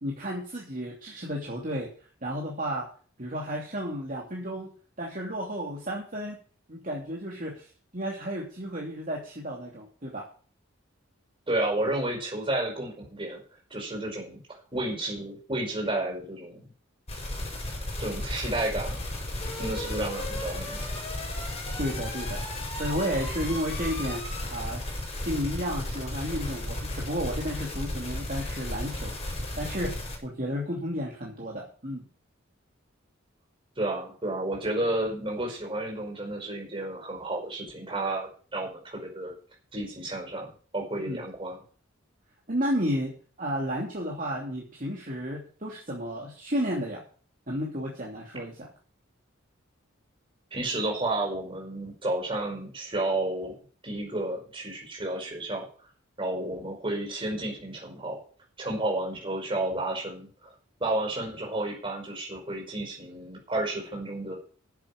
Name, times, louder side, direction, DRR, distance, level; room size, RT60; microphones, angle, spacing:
voice 1, 0.0-1.9 2.2-2.9 3.2-4.7 5.0-6.4 6.7-10.2 21.8-22.4 22.7-24.2 24.5-24.8 25.2-29.1 29.5-32.0 41.0-41.2 42.5-43.1 43.4-47.0 47.5-48.7, equal, 40° right, -2 dB, 2.8 m, -32 dB
voice 2, 11.5-13.4 13.7-16.6 18.0-19.0 19.6-20.8 33.8-39.3 39.7-40.5 40.7-41.6 50.5-53.5 53.8-55.7 56.2-58.2 58.6-60.5 60.8-64.4, right 1 dB, 25° right, 0 dB, 5.2 m, -31 dB
sound 1, 17.1-30.2, left 1 dB, 30° left, 5.3 m, -34 dB
10.0 x 7.8 x 8.6 m, 0.41 s
head